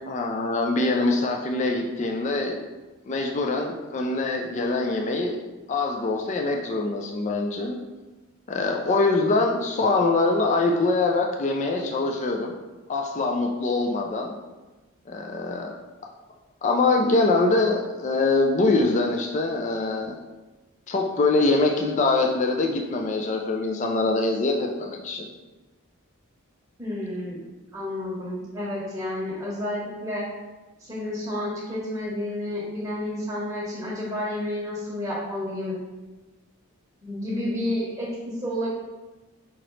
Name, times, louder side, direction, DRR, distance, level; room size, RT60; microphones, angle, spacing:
voice 1, 0.1-2.6 3.1-5.4 5.7-7.8 8.5-12.6 12.9-14.4 15.1-15.7 16.6-20.1 20.9-25.3, left 3 dB, 35° left, 2 dB, 0.3 m, -24 dB
voice 2, 26.8-27.4 27.7-30.3 30.8-35.8 37.0-38.7, left 1 dB, 15° right, -6 dB, 0.9 m, -30 dB
5.0 x 2.9 x 3.1 m, 1.2 s
head